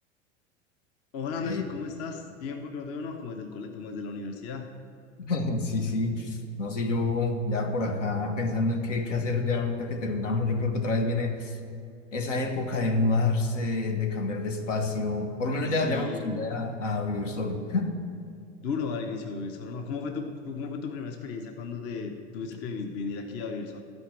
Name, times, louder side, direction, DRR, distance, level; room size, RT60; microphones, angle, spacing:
voice 1, 1.1-4.7 15.8-16.5 18.6-23.8, left 4 dB, 40° left, 5 dB, 0.9 m, -35 dB
voice 2, 5.2-11.6 12.1-18.0, left 3 dB, 75° left, 5 dB, 1.3 m, -28 dB
13.0 x 5.3 x 7.4 m, 2.4 s
figure-of-eight pair, 85°, 38 cm